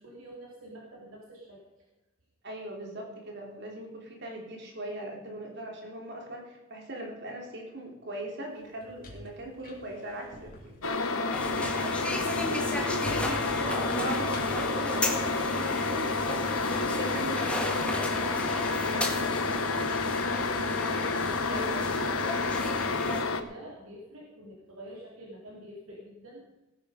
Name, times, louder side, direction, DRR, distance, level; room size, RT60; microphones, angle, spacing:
voice 1, 0.0-1.6 11.5-11.6 18.9-20.7 21.2-21.5 22.0-26.4, right 1 dB, 75° right, -3 dB, 3.4 m, -46 dB
voice 2, 2.4-17.8 20.7-21.0 21.5-21.8, right 1 dB, 55° right, 0 dB, 3.5 m, -40 dB
sound 1, 8.6-11.9 12.4-15.8, left 1 dB, 40° left, 3.5 m, -46 dB
sound 2, 10.8-23.4, left 4 dB, 85° left, 1.1 m, -30 dB
sound 3, 11.3-23.2, left 1 dB, 5° left, 1.7 m, -34 dB
18.0 x 9.4 x 5.1 m, 1.0 s
head